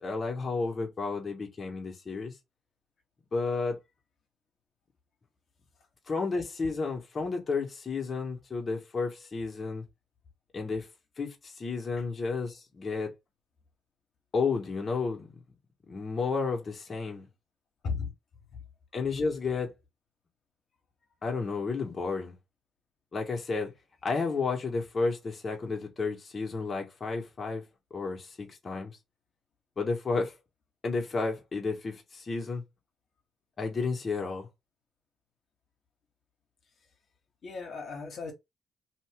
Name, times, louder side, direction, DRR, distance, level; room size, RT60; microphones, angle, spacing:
voice 1, 0.0-2.3 3.3-3.8 6.1-9.8 10.5-10.9 11.2-13.1 14.3-15.3 15.9-17.3 18.9-19.7 21.2-22.3 23.1-23.7 24.0-27.6 27.9-29.0 29.8-30.3 30.8-32.6 33.6-34.5, left 4 dB, 40° left, 1.1 m, -32 dB
voice 2, 37.4-38.3, left 5 dB, 60° left, 1.1 m, -35 dB
2.9 x 2.6 x 3.3 m
supercardioid pair, 70°, 0 cm